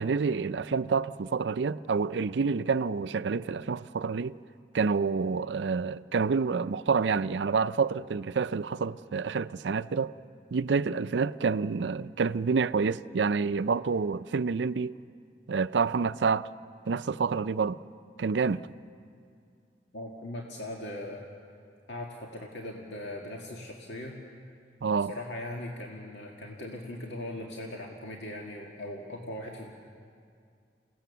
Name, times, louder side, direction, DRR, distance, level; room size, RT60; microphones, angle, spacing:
voice 1, 0.0-4.4 4.7-10.1 10.5-14.9 15.5-16.5 16.9-17.8 18.2-18.7 24.8-25.1, right 5 dB, 80° right, 0.5 m, -28 dB
voice 2, 19.9-21.2 21.9-24.2 25.1-29.9, left 1 dB, 80° left, 2.0 m, -39 dB
29.0 x 17.5 x 6.9 m
head